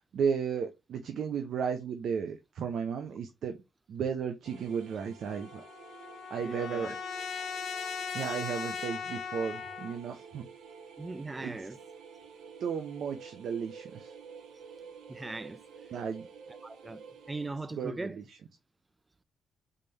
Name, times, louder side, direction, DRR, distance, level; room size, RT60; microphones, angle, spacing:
voice 1, 0.1-3.6 3.9-5.6 6.3-6.9 8.1-10.5 11.4-11.6 12.6-14.1 15.9-16.3 17.7-18.2, right 6 dB, 65° right, 0.7 m, -34 dB
sound 1, 4.4-17.5, right 6 dB, 85° right, 1.0 m, -50 dB
Trumpet, 5.2-10.0, left 6 dB, 70° left, 1.2 m, -38 dB
voice 2, 6.4-7.0 11.0-11.8 15.1-15.6 16.5-18.2, right 2 dB, 15° right, 0.4 m, -39 dB
4.0 x 3.7 x 3.3 m
cardioid pair, 120°, 0 cm